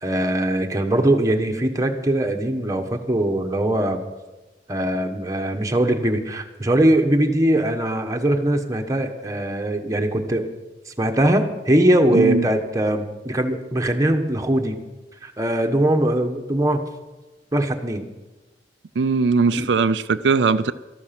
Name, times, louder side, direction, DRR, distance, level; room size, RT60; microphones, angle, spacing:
voice 1, 0.0-4.0 4.7-10.5 10.9-14.8 15.2-16.8 17.5-18.1 19.5-19.7, right 1 dB, 20° right, 3 dB, 1.2 m, -21 dB
voice 2, 12.1-12.5 19.0-20.7, right 4 dB, 85° right, 11 dB, 0.4 m, -19 dB
13.0 x 12.0 x 5.9 m, 1.1 s
head